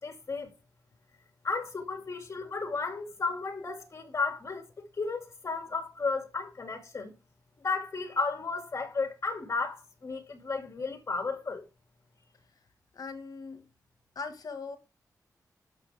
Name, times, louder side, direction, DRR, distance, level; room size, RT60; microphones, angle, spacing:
voice 1, 0.0-0.5 1.4-7.1 7.6-11.7, left 4 dB, 45° left, 2.4 m, -33 dB
voice 2, 12.9-13.7 14.1-14.8, left 4 dB, 65° left, 1.7 m, -40 dB
10.5 x 6.8 x 3.5 m
wide cardioid pair, 130°, 7 cm